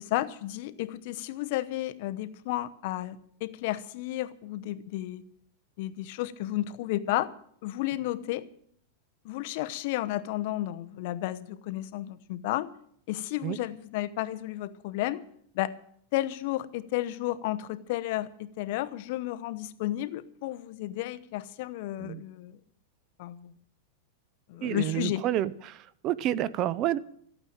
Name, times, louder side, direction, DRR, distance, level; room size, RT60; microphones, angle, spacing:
voice 1, 0.1-5.2 5.8-7.3 7.6-8.5 9.2-12.7 13.1-15.2 15.5-15.7 16.1-22.6 23.2-23.5 24.5-25.2, left 15 dB, 55° left, 13 dB, 0.9 m, -32 dB
voice 2, 24.6-27.0, right 12 dB, 35° right, 19 dB, 0.6 m, -29 dB
14.0 x 8.9 x 8.9 m, 0.65 s
supercardioid pair, 150°, 0 cm